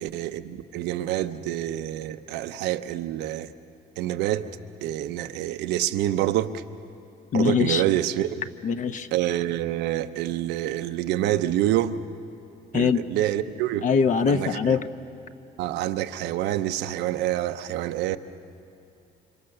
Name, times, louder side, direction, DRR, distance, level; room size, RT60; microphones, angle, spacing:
voice 1, 0.0-3.5 4.0-4.5 4.8-6.6 7.3-8.4 9.1-12.0 12.7-13.9 14.3-14.7 15.6-18.2, right 13 dB, 85° right, 9 dB, 0.9 m, -27 dB
voice 2, 7.3-7.8 8.6-9.1 12.7-13.0 13.8-14.9, left 6 dB, 50° left, 9 dB, 1.0 m, -22 dB
29.0 x 26.0 x 6.8 m, 2.8 s
cardioid pair, 110°, 17 cm